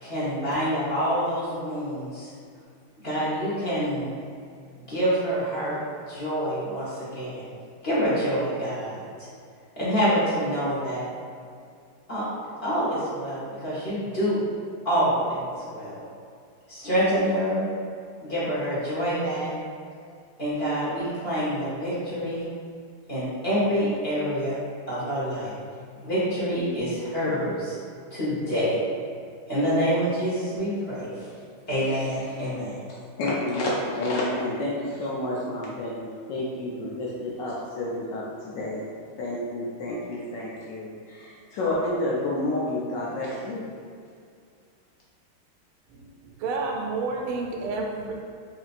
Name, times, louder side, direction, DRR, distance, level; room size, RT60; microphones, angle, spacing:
voice 1, 0.0-2.3 3.0-4.1 4.7-5.8 6.1-7.5 7.8-9.1 9.8-11.0 12.1-12.2 12.6-14.4 14.8-15.9 16.7-17.7 18.2-19.5 20.4-22.5 23.1-24.6 24.9-25.5 25.9-27.7 28.1-28.8 29.5-31.3 31.7-32.7, equal, 35° left, -10 dB, 1.1 m, -26 dB
voice 2, 33.2-38.8 39.2-43.7, left 1 dB, 75° left, -5 dB, 1.1 m, -29 dB
voice 3, 46.4-48.1, right 3 dB, 85° right, 0 dB, 1.4 m, -29 dB
5.1 x 2.7 x 2.5 m, 2.2 s
omnidirectional pair, 2.3 m